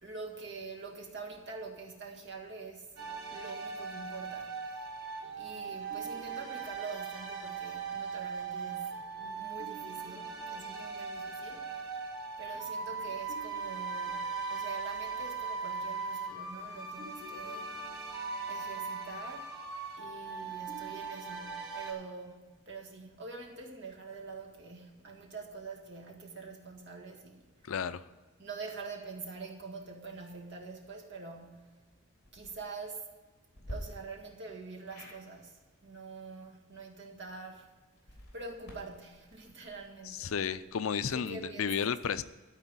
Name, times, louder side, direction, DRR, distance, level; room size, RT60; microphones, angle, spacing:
voice 1, 0.0-2.9 3.3-4.6 5.4-11.8 12.4-17.8 18.5-19.5 20.0-27.5 28.4-31.8 32.3-33.1 33.7-37.7 38.3-40.3 41.1-41.9, right 4 dB, 55° right, 1.7 m, -45 dB
sound 1, 3.0-21.9, right 4 dB, 75° right, 4.3 m, -39 dB
voice 2, 27.6-28.0 40.1-42.2, left 7 dB, 70° left, 0.5 m, -33 dB
sound 2, 32.2-32.5 33.5-33.8 34.9-35.2 37.9-40.8, equal, 50° left, 3.1 m, -50 dB
13.0 x 4.5 x 8.6 m
head